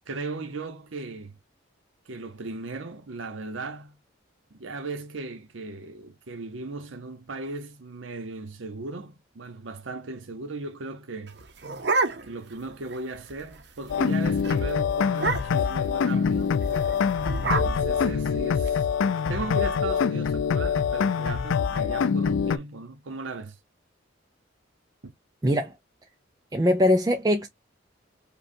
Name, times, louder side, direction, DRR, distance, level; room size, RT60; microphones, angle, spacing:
voice 1, 0.1-1.4 2.1-4.0 4.5-11.4 12.2-16.7 17.4-18.9 19.3-23.5 25.0-25.1, right 3 dB, 90° right, 0.9 m, -37 dB
sound 1, 11.3-12.5 12.9-13.0 13.3-13.6 13.9-14.1 14.4-14.6 15.1-15.7 16.6-18.7, right 3 dB, 60° right, 0.7 m, -29 dB
sound 2, 13.9-22.6, left 6 dB, 90° left, 0.4 m, -25 dB
voice 2, 25.4-25.7 26.5-27.5, left 1 dB, 20° right, 0.4 m, -21 dB
5.2 x 2.3 x 2.6 m
head